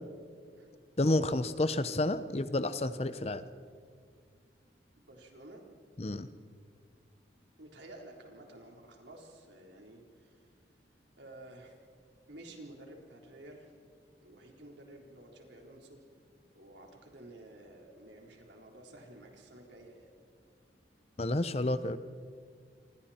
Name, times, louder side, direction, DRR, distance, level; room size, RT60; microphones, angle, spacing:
voice 1, 1.0-3.4 6.0-6.3 21.2-22.0, left 2 dB, 35° left, 13 dB, 0.7 m, -30 dB
voice 2, 5.0-5.6 7.6-10.4 11.2-11.8 12.3-13.7 14.2-16.0 16.5-20.1, right 1 dB, 85° right, 1 dB, 3.9 m, -52 dB
28.0 x 25.0 x 4.4 m, 2.1 s
head